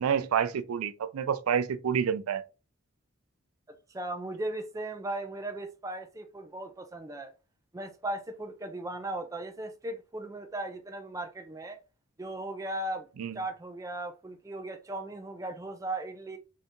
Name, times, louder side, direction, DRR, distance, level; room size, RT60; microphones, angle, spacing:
voice 1, 0.0-2.4 13.2-13.4, right 7 dB, 85° right, 0.4 m, -28 dB
voice 2, 3.7-7.3 7.7-11.8 12.2-13.1 13.3-16.4, right 1 dB, 15° right, 0.3 m, -37 dB
2.7 x 2.6 x 3.4 m
head